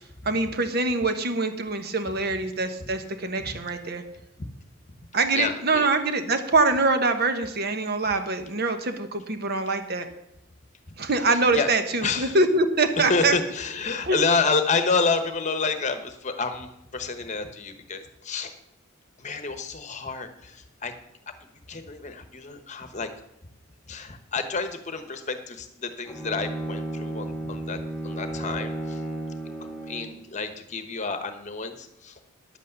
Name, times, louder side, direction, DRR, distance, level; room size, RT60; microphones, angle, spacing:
voice 1, 0.2-4.0 5.1-10.1 11.0-13.3 14.1-14.2, right 3 dB, 50° right, 8 dB, 1.1 m, -24 dB
voice 2, 5.3-5.9 11.2-11.7 12.0-12.4 13.0-18.6 19.2-20.9 21.3-21.4 21.7-23.1 23.9-29.0 29.4-32.2, left 4 dB, 35° left, 8 dB, 1.0 m, -29 dB
Bowed string instrument, 26.0-30.3, right 2 dB, 5° left, 1.6 m, -33 dB
10.5 x 8.3 x 6.8 m, 0.83 s
head